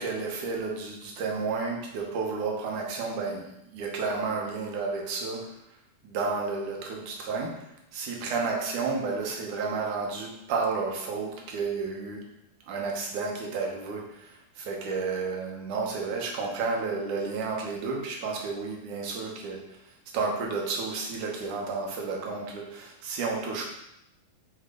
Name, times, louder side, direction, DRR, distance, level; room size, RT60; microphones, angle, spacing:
voice 1, 0.0-5.5 6.0-12.2 12.7-19.6 20.1-23.6, right 4 dB, 70° right, 0 dB, 2.1 m, -31 dB
7.7 x 4.2 x 3.8 m, 0.82 s
omnidirectional pair, 4.4 m